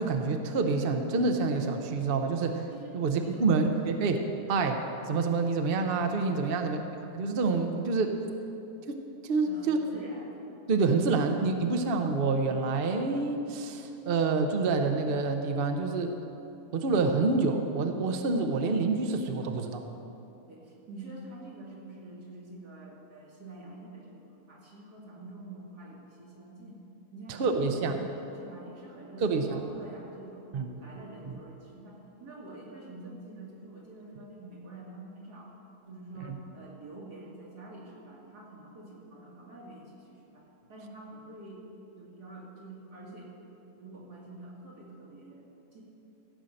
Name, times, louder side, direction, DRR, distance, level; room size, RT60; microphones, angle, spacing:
voice 1, 0.0-2.7 2.9-6.8 7.2-8.1 8.9-9.8 10.7-16.1 16.7-19.8 27.4-28.0 29.2-29.6 30.5-30.7 31.3-31.4 36.3-36.4, right 4 dB, 45° right, 5 dB, 0.8 m, -27 dB
voice 2, 2.7-3.5 6.4-6.8 9.5-10.4 11.7-12.0 20.5-26.8 27.1-30.5 30.8-35.5 35.9-41.6 42.0-43.3 43.8-45.8, right 2 dB, 85° right, -4 dB, 2.7 m, -47 dB
15.0 x 5.6 x 7.7 m, 2.9 s
omnidirectional pair, 1.7 m